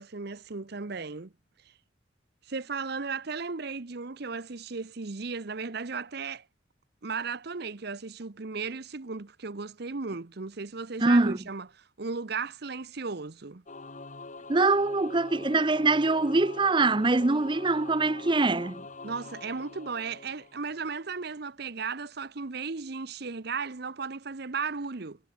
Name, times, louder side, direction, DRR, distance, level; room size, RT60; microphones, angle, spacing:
voice 1, 0.0-1.3 1.6-1.7 2.4-6.5 7.0-13.6 19.0-25.2, right 4 dB, 55° right, 0.9 m, -35 dB
voice 2, 11.0-11.4 14.5-18.8, right 3 dB, 25° right, 0.6 m, -23 dB
Singing / Musical instrument, 13.7-21.1, left 3 dB, 40° left, 1.3 m, -45 dB
head